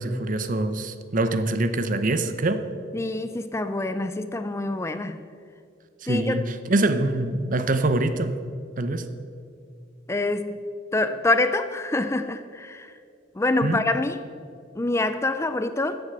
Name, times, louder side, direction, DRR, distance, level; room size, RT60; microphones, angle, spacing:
voice 1, 0.0-2.6 6.0-8.4 8.8-9.1 13.6-13.8, right 2 dB, 45° right, 10 dB, 0.8 m, -24 dB
voice 2, 2.9-5.2 6.1-6.4 10.1-10.6 10.9-12.9 13.4-14.2 14.8-16.0, left 2 dB, 15° left, 10 dB, 0.4 m, -26 dB
14.0 x 8.2 x 6.8 m, 2.4 s
head